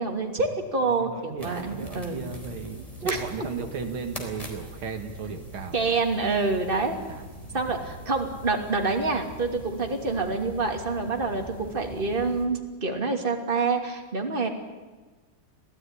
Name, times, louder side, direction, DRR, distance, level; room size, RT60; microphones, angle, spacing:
voice 1, 0.0-2.2 3.0-3.2 5.7-7.0 7.5-14.5, right 3 dB, 25° right, 3 dB, 2.9 m, -27 dB
voice 2, 0.9-6.0 7.1-7.9, right 5 dB, 85° right, 6 dB, 2.6 m, -36 dB
sound 1, 1.4-12.5, equal, 15° left, 4.1 m, -43 dB
26.0 x 17.5 x 9.9 m, 1.3 s
omnidirectional pair, 2.2 m